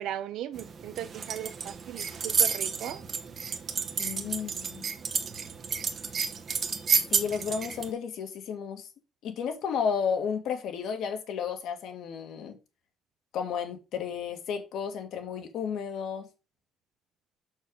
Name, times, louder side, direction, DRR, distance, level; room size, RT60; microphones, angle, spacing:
voice 1, 0.0-3.0, right 11 dB, 65° right, 0.8 m, -37 dB
sound 1, 0.6-7.9, right 6 dB, 30° right, 0.9 m, -31 dB
voice 2, 4.0-4.8 7.1-8.9 9.2-12.6 13.3-16.3, left 7 dB, 60° left, 1.9 m, -32 dB
6.6 x 6.4 x 3.9 m
cardioid pair, 180°, 0 cm